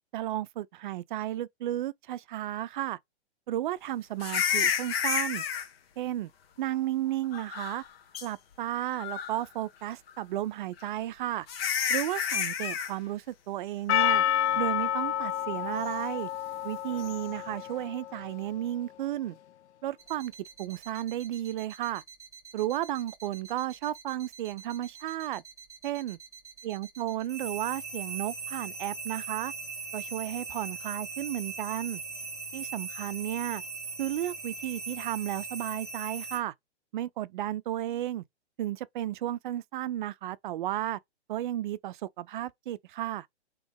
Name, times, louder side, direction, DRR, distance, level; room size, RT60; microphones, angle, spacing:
voice 1, 0.1-3.0 3.5-5.4 6.0-6.3 6.6-7.8 8.2-11.5 11.9-14.2 14.6-16.3 16.6-19.4 19.8-20.3 20.6-22.0 22.5-25.4 25.8-26.2 26.6-29.5 29.9-32.0 32.5-33.6 34.0-36.5 36.9-38.2 38.6-41.0 41.3-43.3, right 13 dB, 45° right, 0.4 m, -33 dB
sound 1, 4.2-5.7 7.3-7.9 8.1-8.3 8.9-9.4 10.8-10.9 11.5-12.9 17.0-17.2, left 8 dB, 60° left, 1.2 m, -30 dB
Percussion, 13.9-18.4, left 11 dB, 80° left, 0.5 m, -29 dB
sound 2, 20.0-36.4, right 4 dB, 10° right, 1.4 m, -40 dB
3.5 x 3.1 x 3.4 m
hypercardioid pair, 120°, 34 cm